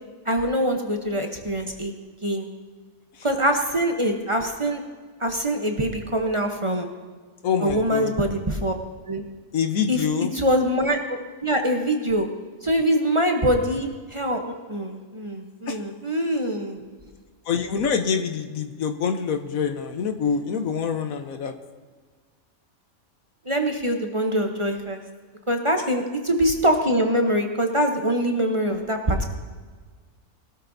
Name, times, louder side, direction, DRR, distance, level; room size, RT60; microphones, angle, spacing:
voice 1, 0.3-1.9 2.2-2.5 3.2-4.8 5.2-6.9 7.6-8.7 9.1-9.2 9.9-12.3 12.6-16.9 23.4-25.0 25.5-29.3, equal, 25° right, 3 dB, 0.9 m, -24 dB
voice 2, 7.4-8.1 9.5-10.3 15.7-15.8 17.5-21.5, left 6 dB, 75° left, 8 dB, 1.4 m, -25 dB
21.0 x 12.5 x 2.7 m, 1.5 s
omnidirectional pair, 1.5 m